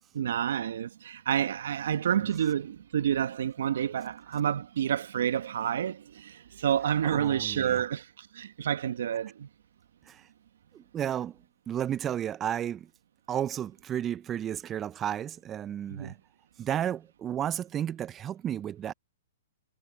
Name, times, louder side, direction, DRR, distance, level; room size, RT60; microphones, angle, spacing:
voice 1, 0.1-9.5 15.9-16.1, right 9 dB, 70° right, 1.6 m, -29 dB
voice 2, 7.0-7.8 10.1-10.2 10.7-11.4 11.7-12.9 13.3-16.2 16.6-18.9, right 10 dB, 20° right, 0.6 m, -32 dB
hypercardioid pair, 125°, 0 cm